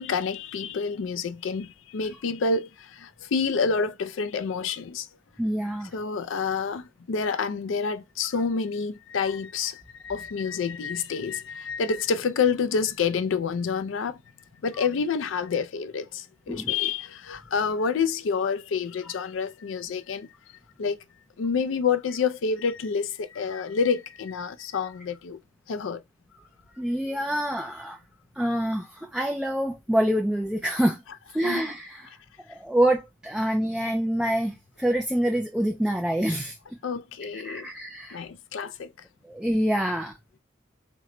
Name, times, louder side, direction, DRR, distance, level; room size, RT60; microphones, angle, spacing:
voice 1, 0.0-5.1 5.9-14.2 14.6-20.3 20.8-21.0 21.4-25.4 25.7-26.0 31.4-31.7 36.8-37.7 38.1-38.9, left 5 dB, 90° left, 0.4 m, -28 dB
voice 2, 5.4-5.9 16.5-16.7 26.8-28.0 28.4-31.0 31.3-32.1 32.5-36.6 37.3-38.2 39.3-40.1, right 1 dB, 5° right, 0.3 m, -26 dB
4.4 x 2.1 x 3.7 m
head